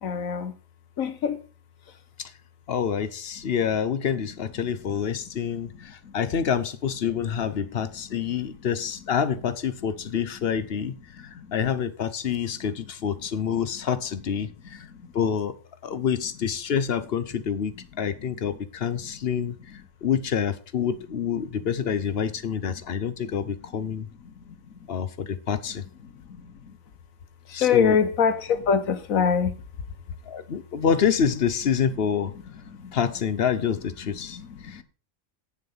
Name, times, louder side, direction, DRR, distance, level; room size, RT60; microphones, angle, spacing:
voice 1, 0.0-0.5 1.0-1.4 3.4-3.5 4.9-5.0 5.5-5.6 6.0-6.2 7.6-7.7 8.1-8.5 10.8-11.6 12.5-12.7 13.4-13.5 14.7-15.1 15.9-16.0 17.9-18.4 18.9-19.1 19.4-19.8 21.6-21.7 22.5-22.6 23.3-23.5 23.8-23.9 24.2-24.8 25.7-26.8 27.5-29.6 31.9-32.0 32.7-33.0 34.0-34.8, left 6 dB, 85° left, 1.5 m, -28 dB
voice 2, 2.7-10.9 11.5-14.9 15.1-15.5 15.8-19.5 20.0-24.1 24.9-25.8 27.5-28.0 30.3-32.3 32.9-34.4 34.6-34.8, left 7 dB, 50° left, 1.0 m, -27 dB
8.9 x 7.1 x 5.5 m
omnidirectional pair, 1.4 m